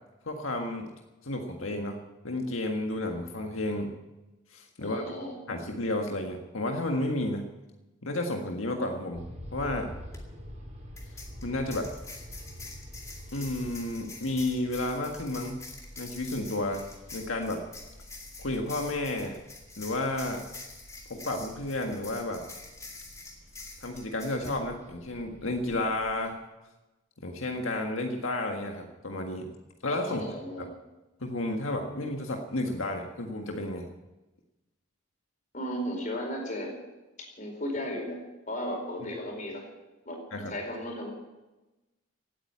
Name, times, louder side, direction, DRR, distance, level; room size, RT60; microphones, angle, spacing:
voice 1, 0.2-0.9 1.2-3.9 4.5-5.0 5.5-7.5 8.0-9.2 9.5-9.9 11.4-11.9 13.3-15.6 16.0-16.9 17.1-17.6 18.4-19.4 19.8-20.4 21.1-22.4 23.8-26.4 27.2-29.5 29.8-30.2 30.6-30.7 31.2-33.8 40.3-40.5, left 1 dB, 85° left, 3 dB, 1.7 m, -32 dB
voice 2, 4.8-5.3 30.1-30.7 35.5-36.7 37.4-38.2 38.5-39.7 40.1-40.2 40.5-41.1, equal, 40° left, 1 dB, 4.5 m, -35 dB
sound 1, 9.1-26.2, equal, 35° right, 5.2 m, -48 dB
sound 2, 10.1-10.2 11.0-24.6, left 3 dB, 15° left, 2.4 m, -46 dB
17.5 x 9.2 x 8.6 m, 1.1 s
head